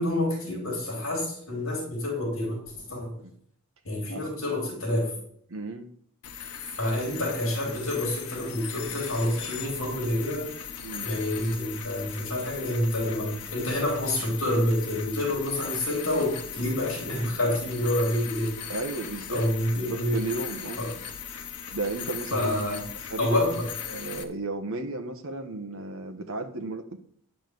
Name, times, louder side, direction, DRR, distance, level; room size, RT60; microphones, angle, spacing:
voice 1, 0.0-3.1 3.8-5.2 6.8-10.5 11.0-18.7 19.3-20.2 20.8-20.9 22.3-22.8 23.2-23.7, left 1 dB, 65° left, -2 dB, 3.2 m, -28 dB
voice 2, 5.5-5.9 10.8-11.1 18.7-19.4 19.7-20.8 21.7-23.3 23.8-27.0, right 2 dB, 65° right, 5 dB, 1.0 m, -34 dB
sound 1, 6.2-24.2, left 8 dB, 90° left, 1.1 m, -39 dB
10.0 x 5.3 x 7.6 m, 0.64 s
head